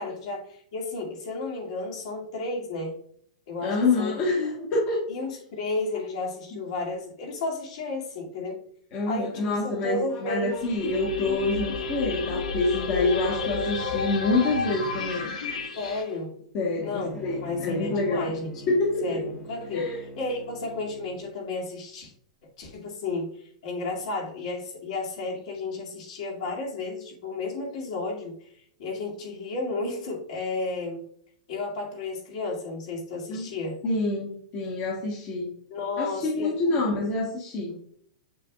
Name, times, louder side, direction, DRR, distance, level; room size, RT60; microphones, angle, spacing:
voice 1, 0.0-3.0 3.5-4.2 5.1-8.6 9.1-10.6 15.8-16.3 16.8-18.7 19.0-19.8 20.2-22.1 22.6-23.3 23.6-28.3 28.8-31.0 31.5-33.8 35.7-36.8, left 2 dB, 55° left, -1 dB, 2.3 m, -32 dB
voice 2, 3.6-5.1 8.9-15.3 16.5-18.3 18.7-19.2 19.7-20.0 33.3-33.5 33.8-35.5 36.0-37.7, left 3 dB, 30° left, -3 dB, 1.3 m, -27 dB
sound 1, 10.5-16.0, left 4 dB, 80° left, 1.5 m, -31 dB
Bowed string instrument, 16.7-21.3, left 2 dB, 5° left, 1.2 m, -43 dB
7.4 x 6.7 x 2.4 m, 0.62 s
supercardioid pair, 165°, 4 cm